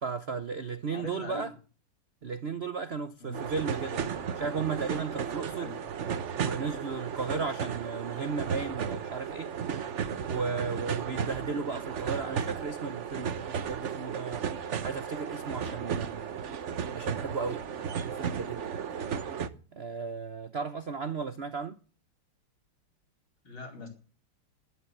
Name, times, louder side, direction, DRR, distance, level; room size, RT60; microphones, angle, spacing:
voice 1, 0.0-1.5 2.2-4.0 4.3-5.7 6.4-9.5 10.3-14.5 14.8-16.4 16.9-19.1 19.7-21.8, right 5 dB, 80° right, 0.5 m, -35 dB
voice 2, 0.9-1.5 3.2-3.5 5.6-5.8 11.0-11.3 23.4-23.9, left 4 dB, 60° left, 5.2 m, -42 dB
sound 1, 3.3-19.5, right 7 dB, 55° right, 0.8 m, -34 dB
11.5 x 11.5 x 7.8 m
omnidirectional pair, 2.4 m